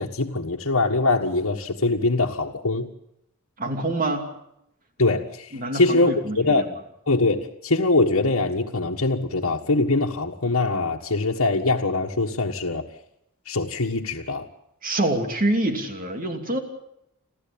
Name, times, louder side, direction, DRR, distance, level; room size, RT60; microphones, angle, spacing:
voice 1, 0.0-2.9 5.0-6.7 7.1-12.8 13.4-14.5, left 2 dB, 85° left, -3 dB, 1.6 m, -23 dB
voice 2, 3.6-4.3 5.5-6.6 14.8-16.6, right 1 dB, 40° right, 5 dB, 2.8 m, -26 dB
30.0 x 13.0 x 8.8 m, 0.80 s
head